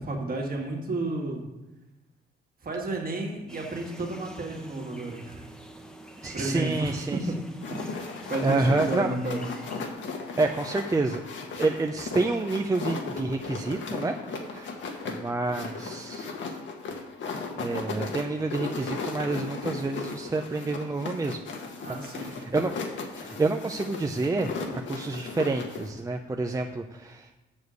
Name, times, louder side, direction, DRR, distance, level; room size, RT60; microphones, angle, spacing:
voice 1, 0.0-1.5 2.6-5.5 6.3-7.9 8.3-9.5 21.8-22.4, right 2 dB, 45° right, 1 dB, 2.1 m, -32 dB
sound 1, 3.5-9.9, right 1 dB, 5° left, 1.1 m, -46 dB
voice 2, 6.2-7.2 8.4-9.2 10.4-11.2 11.6-14.2 14.5-14.7 15.1-16.3 17.6-21.4 22.1-22.7 23.1-27.3, right 3 dB, 15° right, 4 dB, 0.6 m, -28 dB
sound 2, 7.6-25.9, left 4 dB, 70° left, 1.4 m, -36 dB
7.3 x 6.4 x 6.4 m, 1.0 s
cardioid pair, 90°, 20 cm